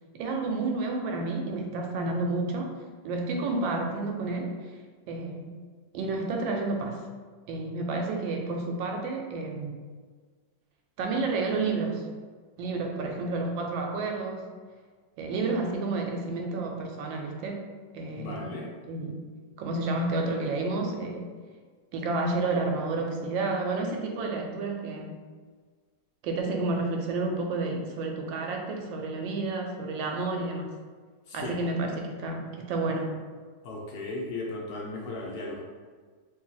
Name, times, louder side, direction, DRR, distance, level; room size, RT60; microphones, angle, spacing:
voice 1, 0.1-2.7 3.0-4.5 5.1-5.5 5.9-7.0 7.5-9.8 11.0-12.0 12.6-14.4 15.2-17.6 17.9-18.5 18.9-19.2 19.6-21.3 21.9-25.2 26.2-30.7 31.3-33.1, right 3 dB, 90° right, 2 dB, 1.3 m, -30 dB
voice 2, 18.2-18.7 31.3-31.6 33.6-35.6, left 2 dB, 75° left, -2 dB, 0.9 m, -36 dB
3.0 x 2.7 x 3.8 m, 1.5 s
omnidirectional pair, 2.0 m